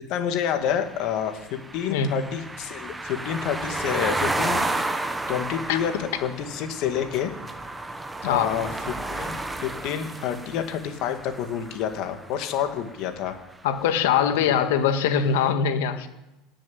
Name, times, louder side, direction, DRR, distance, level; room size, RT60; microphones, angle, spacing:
voice 1, 0.1-4.7 5.3-7.3 8.3-8.7 9.1-13.3, left 9 dB, 50° left, 6 dB, 2.1 m, -28 dB
sound 1, 0.6-12.7, right 2 dB, 10° right, 0.9 m, -32 dB
voice 2, 1.9-2.3 5.7-5.9 8.2-8.5 13.6-16.1, left 7 dB, 85° left, 8 dB, 1.8 m, -22 dB
17.0 x 7.5 x 9.6 m, 1.0 s
supercardioid pair, 160°, 0 cm